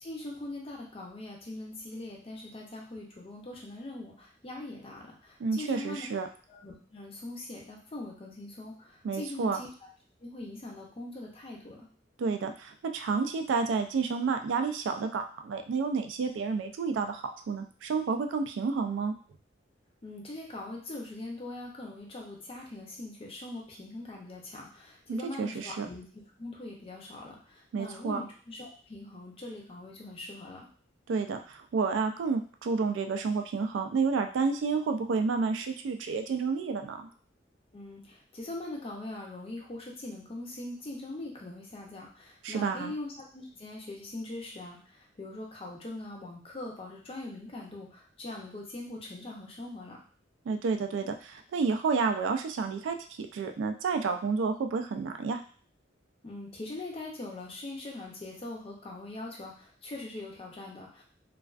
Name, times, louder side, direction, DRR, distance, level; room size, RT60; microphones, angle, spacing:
voice 1, 0.0-6.1 6.5-9.7 10.2-11.9 20.0-26.0 26.4-30.7 37.7-50.0 56.2-61.0, left 2 dB, 30° left, -2 dB, 0.6 m, -42 dB
voice 2, 5.4-6.3 9.0-9.6 12.2-19.1 25.1-25.9 27.7-28.2 31.1-37.1 42.4-42.9 50.5-55.4, right 5 dB, 75° right, 6 dB, 0.3 m, -30 dB
2.3 x 2.3 x 2.3 m, 0.43 s
head